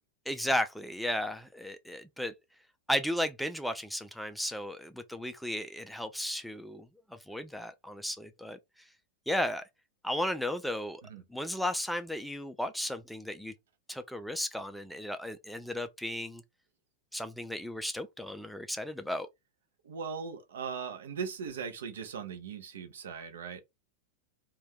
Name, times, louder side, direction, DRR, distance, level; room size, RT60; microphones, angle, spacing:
voice 1, 0.3-2.3 2.9-6.9 7.3-8.6 9.3-9.6 10.0-11.0 11.3-13.5 13.9-16.4 17.1-19.3, left 1 dB, ahead, 0.3 m, -34 dB
voice 2, 19.8-23.6, right 6 dB, 65° right, 0.6 m, -39 dB
2.6 x 2.2 x 3.5 m
figure-of-eight pair, 90°, 0 cm